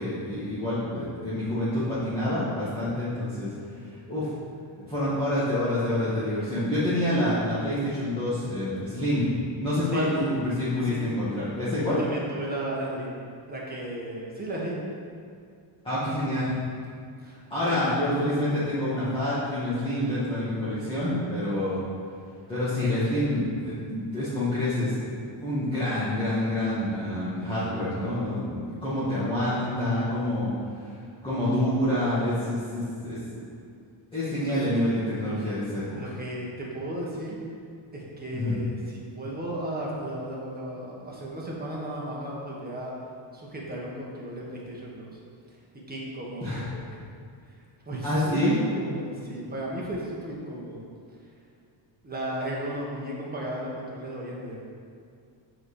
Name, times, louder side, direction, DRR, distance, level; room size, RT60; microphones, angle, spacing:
voice 1, 0.0-3.5 4.1-4.3 4.8-9.3 9.6-12.0 15.8-16.5 17.5-21.8 22.5-25.0 25.4-30.5 31.2-33.5 34.1-35.8 38.3-38.5 46.4-46.6 48.0-48.5, left 1 dB, 10° left, -12 dB, 1.8 m, -27 dB
voice 2, 12.0-13.2 13.5-14.8 17.2-17.3 17.6-18.2 34.4-34.8 35.9-37.4 37.9-42.9 43.3-45.2 45.9-46.8 47.8-50.8 52.0-54.6, right 1 dB, 20° right, -4 dB, 1.6 m, -35 dB
8.5 x 4.4 x 6.6 m, 2.3 s
cardioid pair, 170°, 47 cm